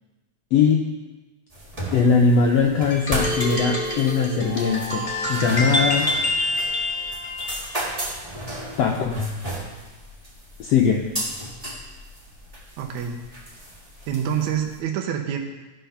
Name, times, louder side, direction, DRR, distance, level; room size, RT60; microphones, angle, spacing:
voice 1, 0.5-0.8 1.9-6.1 8.8-9.1 10.6-11.0, left 5 dB, 75° left, 0 dB, 1.5 m, -20 dB
sound 1, 1.5-14.8, equal, 25° right, 0.7 m, -34 dB
sound 2, 2.9-7.7, left 1 dB, 25° left, 1.0 m, -26 dB
voice 2, 12.8-13.2 14.1-15.4, right 8 dB, 75° right, 3 dB, 2.1 m, -26 dB
14.0 x 5.6 x 5.7 m, 1.2 s
omnidirectional pair, 3.7 m